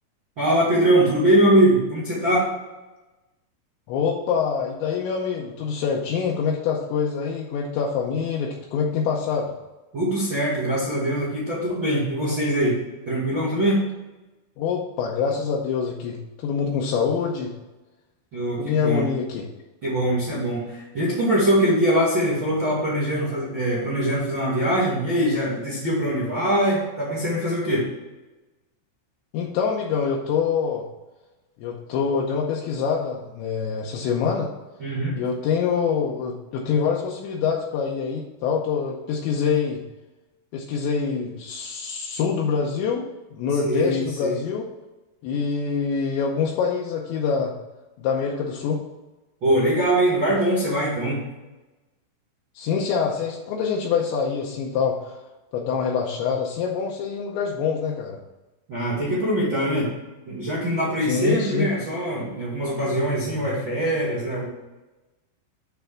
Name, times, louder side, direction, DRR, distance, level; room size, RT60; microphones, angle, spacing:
voice 1, 0.4-2.5 9.9-12.8 13.0-13.8 18.3-19.0 19.8-27.9 34.8-35.2 43.6-44.4 49.4-51.2 58.7-59.9 60.3-64.4, right 1 dB, 70° right, -7 dB, 1.1 m, -22 dB
voice 2, 3.9-9.5 14.6-17.5 18.6-19.5 29.3-30.9 31.6-34.5 35.2-39.8 40.5-44.6 45.2-47.5 48.0-48.8 52.6-55.2 55.5-58.2 61.0-61.7, left 6 dB, 85° left, -2 dB, 2.7 m, -25 dB
9.2 x 3.4 x 5.8 m, 1.1 s
omnidirectional pair, 5.9 m